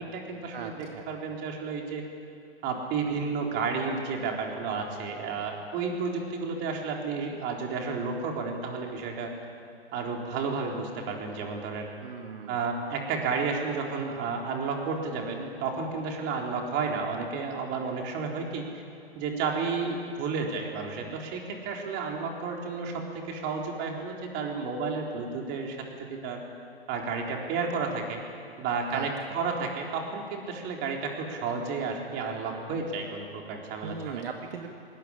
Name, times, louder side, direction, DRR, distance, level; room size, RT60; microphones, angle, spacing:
voice 1, 0.0-2.0 2.6-9.3 9.9-11.9 12.5-18.7 19.2-26.4 26.9-28.2 28.6-34.2, right 4 dB, 35° right, 1 dB, 3.9 m, -32 dB
voice 2, 0.5-1.1 12.0-12.6 28.9-29.4 33.8-34.7, right 6 dB, 65° right, 3 dB, 2.0 m, -38 dB
20.0 x 19.0 x 9.9 m, 2.6 s
hypercardioid pair, 120°, 31 cm